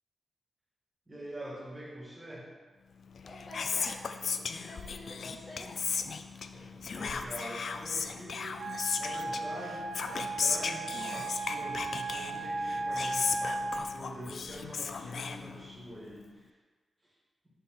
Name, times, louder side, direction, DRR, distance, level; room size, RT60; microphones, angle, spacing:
voice 1, 1.1-2.5 6.5-16.6 17.0-17.1, right 1 dB, 15° right, -6 dB, 1.8 m, -45 dB
Whispering, 3.1-15.9, left 5 dB, 60° left, 0.3 m, -36 dB
voice 2, 3.2-5.7, left 1 dB, 40° left, -2 dB, 0.7 m, -48 dB
Wind instrument woodwind instrument, 8.5-13.9, right 3 dB, 80° right, 0.4 m, -36 dB
7.9 x 3.7 x 4.1 m, 1.3 s
wide cardioid pair, 165°, 0 cm